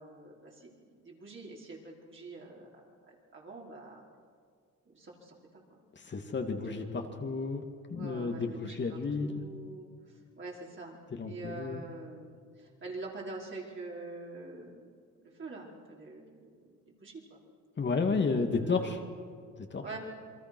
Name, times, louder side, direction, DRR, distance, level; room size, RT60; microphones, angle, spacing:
voice 1, 0.0-4.0 4.9-5.6 6.7-6.8 7.9-9.9 10.4-17.4 18.5-19.0 19.8-20.0, right 3 dB, 40° right, -3 dB, 4.9 m, -46 dB
voice 2, 6.1-7.6 7.9-9.4 11.1-11.8 17.8-19.0 19.7-19.8, left 4 dB, 35° left, 4 dB, 2.3 m, -32 dB
28.0 x 22.0 x 6.3 m, 2.1 s
cardioid pair, 90°, 30 cm